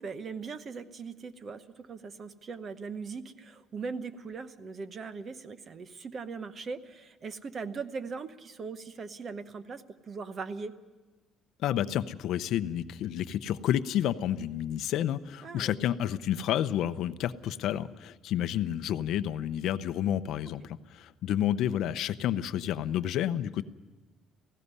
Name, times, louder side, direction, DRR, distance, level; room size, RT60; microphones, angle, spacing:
voice 1, 0.0-10.8 15.4-15.8, right 4 dB, 30° right, 12 dB, 0.8 m, -40 dB
voice 2, 11.6-23.7, left 11 dB, 65° left, 13 dB, 0.6 m, -30 dB
18.0 x 16.0 x 9.6 m, 1.2 s
cardioid pair, 160°, 0 cm